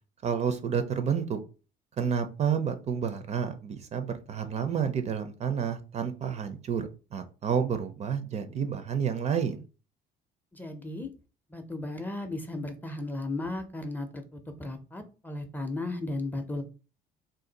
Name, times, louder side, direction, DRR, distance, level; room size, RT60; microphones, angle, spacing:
voice 1, 0.2-1.4 2.0-9.6, right 7 dB, 40° right, 9 dB, 0.4 m, -30 dB
voice 2, 10.5-11.1 11.5-16.6, left 2 dB, 10° left, 6 dB, 0.5 m, -35 dB
2.6 x 2.3 x 3.9 m, 0.34 s
cardioid pair, 110°, 17 cm